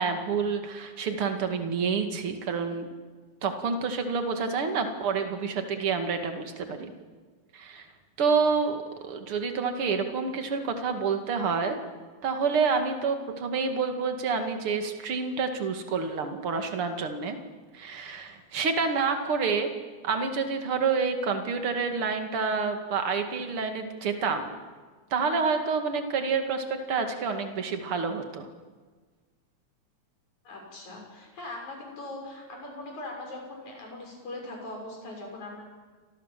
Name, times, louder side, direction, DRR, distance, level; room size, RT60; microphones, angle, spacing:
voice 1, 0.0-2.9 3.4-6.9 7.5-7.9 8.2-11.8 12.2-17.4 17.7-19.7 20.0-24.5 25.1-28.5, right 5 dB, 50° right, 6 dB, 2.9 m, -28 dB
voice 2, 30.4-35.6, left 2 dB, 70° left, 1 dB, 8.0 m, -40 dB
29.5 x 24.5 x 7.6 m, 1.4 s
omnidirectional pair, 3.4 m